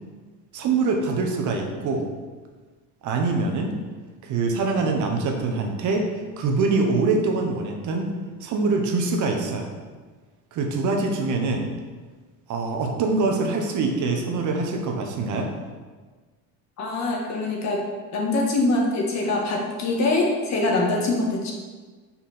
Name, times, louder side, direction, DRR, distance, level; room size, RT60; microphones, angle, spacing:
voice 1, 0.5-2.1 3.0-3.8 4.2-6.1 6.4-8.1 8.4-9.7 10.5-11.7 12.5-15.5, right 3 dB, 50° right, 3 dB, 1.0 m, -24 dB
voice 2, 16.8-17.8 18.1-21.5, left 2 dB, 45° left, -1 dB, 1.6 m, -23 dB
5.7 x 4.3 x 5.8 m, 1.4 s
cardioid pair, 130°, 40 cm